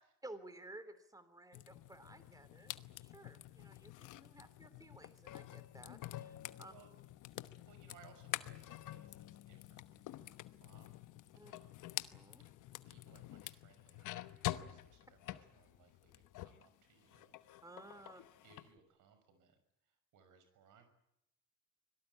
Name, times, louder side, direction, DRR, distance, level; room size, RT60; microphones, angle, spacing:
voice 1, 0.2-6.7 11.4-11.5 12.1-12.4 17.6-18.2, right 2 dB, 10° right, 12 dB, 3.0 m, -55 dB
sound 1, 1.5-16.7 17.0-18.7, left 15 dB, 85° left, 1.1 m, -48 dB
voice 2, 7.6-9.2 9.5-11.0 11.4-11.9 12.4-12.5 12.9-17.4 18.1-20.9, right 6 dB, 90° right, 9 dB, 6.0 m, -66 dB
25.0 x 18.0 x 9.8 m, 0.79 s
cardioid pair, 90°, 30 cm